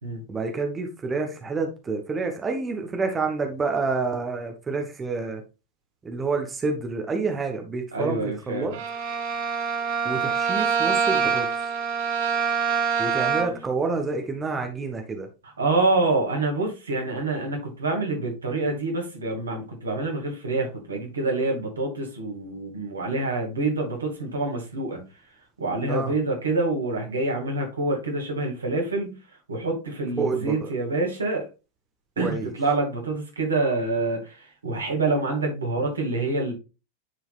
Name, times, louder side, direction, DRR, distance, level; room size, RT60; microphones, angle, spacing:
voice 1, 0.3-5.4 6.0-8.2 8.5-8.7 10.0-11.5 13.0-15.3 25.9-26.1 30.2-30.7 32.2-32.5, right 4 dB, 15° right, 4 dB, 1.3 m, -28 dB
voice 2, 7.9-8.8 15.6-25.0 25.6-29.1 29.5-31.5 32.2-36.5, right 2 dB, 75° right, 1 dB, 2.5 m, -26 dB
Bowed string instrument, 8.7-13.7, right 6 dB, 50° right, 1.2 m, -25 dB
10.0 x 4.7 x 2.5 m, 0.29 s
figure-of-eight pair, 90°, 0 cm